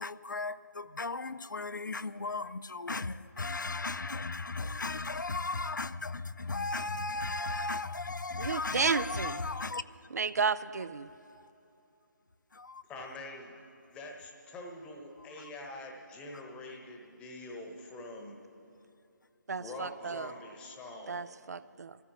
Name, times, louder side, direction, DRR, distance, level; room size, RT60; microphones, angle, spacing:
voice 1, 0.0-9.8 11.3-11.5 12.5-12.8 15.2-15.5, left 3 dB, 80° left, 0.4 m, -36 dB
voice 2, 8.4-9.4 10.1-11.1 19.5-20.3 21.1-22.0, right 5 dB, 60° right, 0.5 m, -32 dB
voice 3, 12.9-13.6 13.9-18.4 19.6-21.6, left 2 dB, 10° left, 1.1 m, -45 dB
22.5 x 14.0 x 3.1 m
figure-of-eight pair, 150°, 10 cm